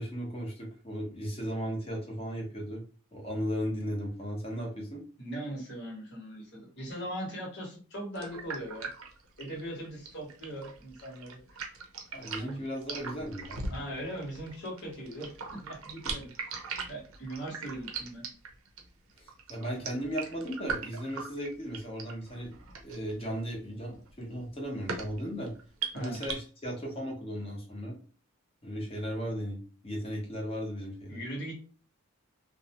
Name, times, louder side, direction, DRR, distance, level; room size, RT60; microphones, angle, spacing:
voice 1, 0.0-2.8 3.1-5.0 12.1-13.8 19.2-22.6 22.8-25.5 25.9-28.0 28.6-31.2, equal, 25° left, -1 dB, 0.7 m, -36 dB
voice 2, 5.2-8.9 9.4-11.6 12.4-12.6 13.7-15.3 15.6-16.3 16.9-18.2 25.9-26.2 31.1-31.6, right 1 dB, 50° left, -1 dB, 1.0 m, -40 dB
sound 1, 8.2-26.3, right 5 dB, 70° right, 0.6 m, -40 dB
2.5 x 2.1 x 2.8 m, 0.39 s
head